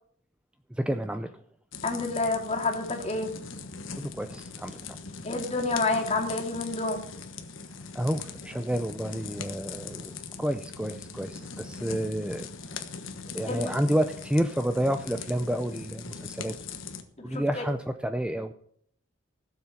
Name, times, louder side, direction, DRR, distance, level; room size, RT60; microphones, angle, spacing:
voice 1, 0.7-1.4 4.0-5.0 7.9-12.5 13.3-16.5 17.2-18.5, equal, 5° right, 8 dB, 0.5 m, -30 dB
sound 1, 1.7-17.0, left 5 dB, 70° left, 1.4 m, -41 dB
voice 2, 1.8-3.3 5.2-7.0 13.5-13.8 17.2-17.6, left 3 dB, 30° left, 0 dB, 2.6 m, -29 dB
16.0 x 7.4 x 5.8 m, 0.64 s
head